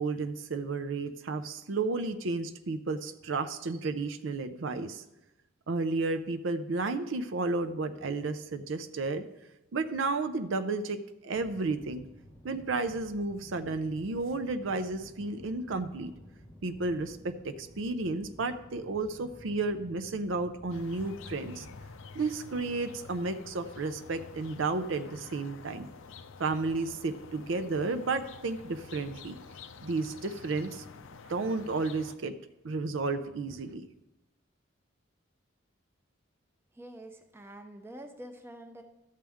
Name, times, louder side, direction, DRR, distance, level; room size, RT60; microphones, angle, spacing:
voice 1, 0.0-5.0 5.7-9.2 9.7-12.1 12.4-16.1 16.6-21.7 22.1-25.9 26.4-29.4 29.8-30.8 31.3-32.3 32.6-33.9, right 3 dB, 70° right, 9 dB, 0.5 m, -32 dB
sound 1, 11.3-21.9, equal, 10° left, 1.0 m, -53 dB
sound 2, 20.7-32.2, left 5 dB, 70° left, 0.5 m, -49 dB
voice 2, 36.7-38.8, right 1 dB, 10° right, 5 dB, 0.6 m, -46 dB
12.5 x 7.5 x 3.5 m, 0.96 s
head